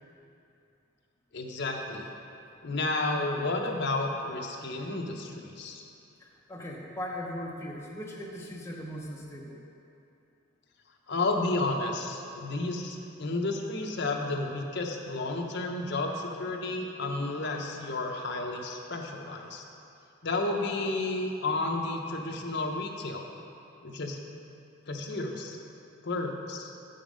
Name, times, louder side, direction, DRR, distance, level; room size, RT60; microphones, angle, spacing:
voice 1, 1.3-2.1 2.6-5.8 11.1-19.6 20.2-23.3 23.8-24.2 24.9-25.6 26.0-26.7, left 2 dB, 55° left, 2 dB, 0.7 m, -32 dB
voice 2, 6.2-9.6, equal, 10° left, -3 dB, 0.8 m, -39 dB
7.1 x 5.4 x 5.1 m, 2.7 s
head